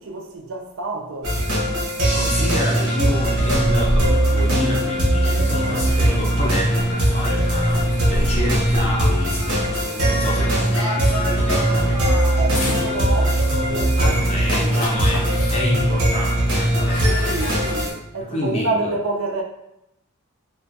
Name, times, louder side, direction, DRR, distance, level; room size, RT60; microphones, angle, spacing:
voice 1, 0.0-1.4 12.4-15.0 17.0-19.4, right 2 dB, 60° right, 0.4 m, -29 dB
sound 1, 1.2-17.9, right 1 dB, 75° right, 0.8 m, -20 dB
sound 2, 2.1-17.8, equal, 80° left, 0.6 m, -31 dB
voice 2, 2.1-12.0 14.0-17.5 18.3-18.9, left 1 dB, 30° left, 0.5 m, -28 dB
2.4 x 2.2 x 2.5 m
head